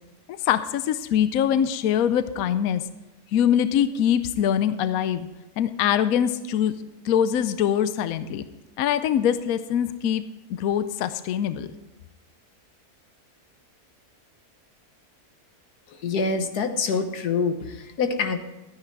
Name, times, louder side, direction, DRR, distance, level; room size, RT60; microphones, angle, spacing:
voice 1, 0.4-2.8 3.3-5.3 5.6-6.8 7.0-8.4 8.8-10.2 10.5-11.7, left 9 dB, 70° left, 12 dB, 1.0 m, -23 dB
voice 2, 15.9-18.4, left 4 dB, 90° left, 7 dB, 1.6 m, -26 dB
13.0 x 9.7 x 4.6 m, 1.1 s
omnidirectional pair, 1.6 m